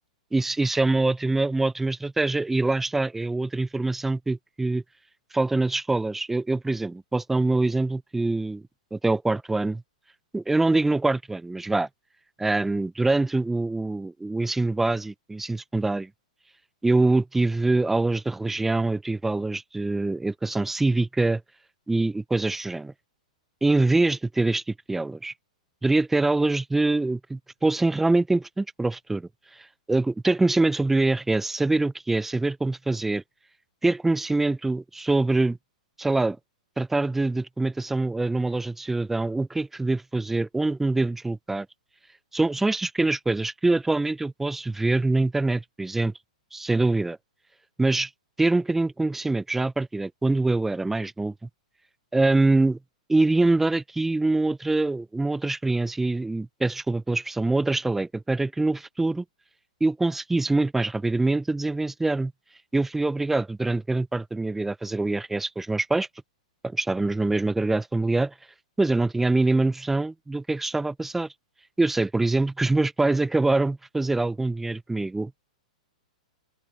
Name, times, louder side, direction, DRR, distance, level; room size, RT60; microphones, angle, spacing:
voice 1, 0.3-4.8 5.3-8.6 8.9-9.8 10.3-11.9 12.4-16.1 16.8-21.4 21.9-22.9 23.6-25.3 25.8-33.2 33.8-35.6 36.0-36.4 36.8-41.7 42.3-46.1 46.5-47.2 47.8-48.1 48.4-51.5 52.1-52.8 53.1-59.2 59.8-62.3 62.7-66.1 66.6-68.3 68.8-71.3 71.8-75.5, right 2 dB, 5° right, 0.7 m, -24 dB
open air
hypercardioid pair, 115°, 4 cm